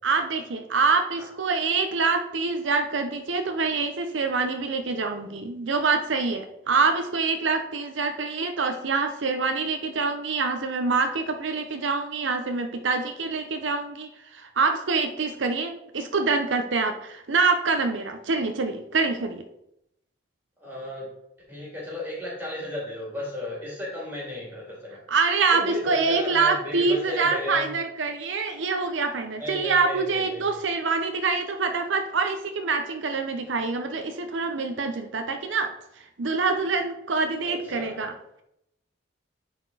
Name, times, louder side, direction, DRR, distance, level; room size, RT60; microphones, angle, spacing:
voice 1, 0.0-19.4 25.1-35.7 36.2-38.1, right 4 dB, 75° right, 6 dB, 0.7 m, -25 dB
voice 2, 20.6-21.1 21.5-25.0 25.5-27.7 29.4-30.6 37.4-38.1, left 1 dB, 10° right, -4 dB, 2.7 m, -34 dB
10.0 x 4.4 x 4.0 m, 0.80 s
head